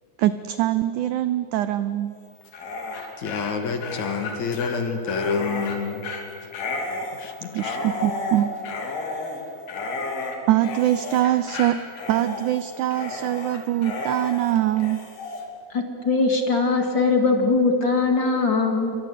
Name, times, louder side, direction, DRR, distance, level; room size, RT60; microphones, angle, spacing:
voice 1, 0.2-2.2 7.5-8.5 10.5-11.8 12.1-15.0, right 13 dB, 85° right, 13 dB, 1.7 m, -23 dB
Dog, 2.4-15.4, left 3 dB, 90° left, 4.9 m, -32 dB
voice 2, 3.2-6.1 7.1-7.8, left 5 dB, 55° left, 7 dB, 2.6 m, -28 dB
voice 3, 15.7-19.0, left 3 dB, 35° left, 4 dB, 2.3 m, -21 dB
28.0 x 23.0 x 8.3 m, 2.8 s
omnidirectional pair, 4.4 m